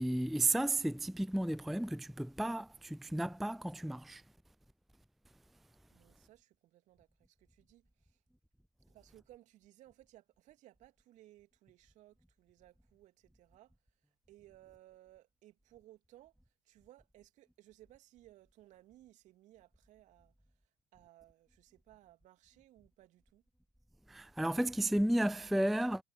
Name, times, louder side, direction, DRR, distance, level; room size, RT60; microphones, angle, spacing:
voice 1, 0.0-4.2 24.1-26.0, right 1 dB, ahead, 0.4 m, -33 dB
voice 2, 5.9-8.2 8.9-13.7 14.3-16.4 16.6-20.3 20.9-23.4, right 15 dB, 55° right, 2.8 m, -61 dB
figure-of-eight pair, 55°, 15 cm